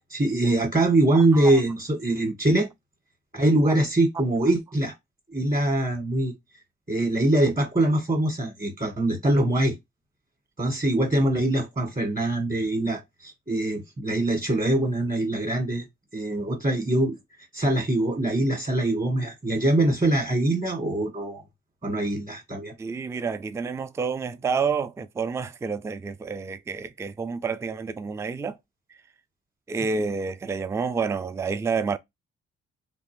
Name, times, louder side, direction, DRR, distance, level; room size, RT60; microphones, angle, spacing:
voice 1, 0.1-2.7 3.3-4.9 5.3-6.3 6.9-9.8 10.6-15.9 16.1-17.2 17.5-21.4 21.8-22.7, right 1 dB, 30° right, 1.9 m, -23 dB
voice 2, 22.8-28.6 29.7-32.0, right 5 dB, 10° right, 0.3 m, -29 dB
3.0 x 2.5 x 3.3 m
supercardioid pair, 50°, 29 cm